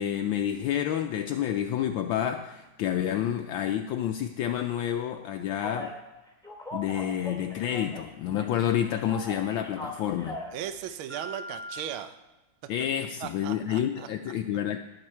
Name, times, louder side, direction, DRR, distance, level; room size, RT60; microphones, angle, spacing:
voice 1, 0.0-5.9 6.7-10.4 12.7-14.8, left 10 dB, 75° left, 6 dB, 1.3 m, -29 dB
Telephone, 5.6-5.9 6.4-8.1 8.4-10.5 11.1-11.8, left 1 dB, ahead, 1.9 m, -39 dB
voice 2, 10.5-12.2 13.2-14.1, right 10 dB, 80° right, 9 dB, 1.5 m, -37 dB
19.0 x 6.7 x 4.4 m, 1.1 s
omnidirectional pair, 2.3 m